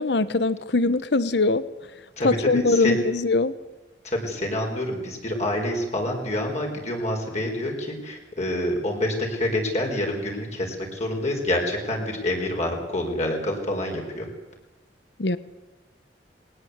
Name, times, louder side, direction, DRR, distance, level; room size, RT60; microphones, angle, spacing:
voice 1, 0.0-1.6 2.2-3.5 15.2-15.4, left 3 dB, 70° left, 16 dB, 1.0 m, -22 dB
voice 2, 2.2-3.0 4.0-14.3, left 1 dB, 40° left, 1 dB, 4.6 m, -27 dB
20.5 x 19.0 x 8.1 m, 1.1 s
head